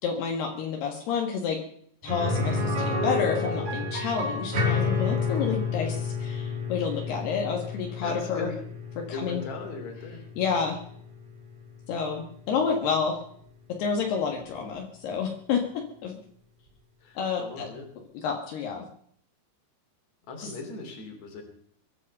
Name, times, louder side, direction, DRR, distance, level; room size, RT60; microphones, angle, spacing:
voice 1, 0.0-1.6 2.0-8.5 9.0-9.4 10.4-10.8 11.9-13.2 13.8-16.2 17.2-17.7 18.2-18.8, left 6 dB, 70° left, 1 dB, 3.7 m, -29 dB
sound 1, 2.1-11.9 12.2-12.3 14.7-14.8, left 3 dB, 45° right, 6.6 m, -30 dB
voice 2, 8.0-8.6 9.1-10.2 17.0-17.9 20.3-21.4, left 3 dB, 45° left, 3 dB, 4.2 m, -38 dB
23.0 x 9.9 x 5.5 m, 0.65 s
omnidirectional pair, 4.9 m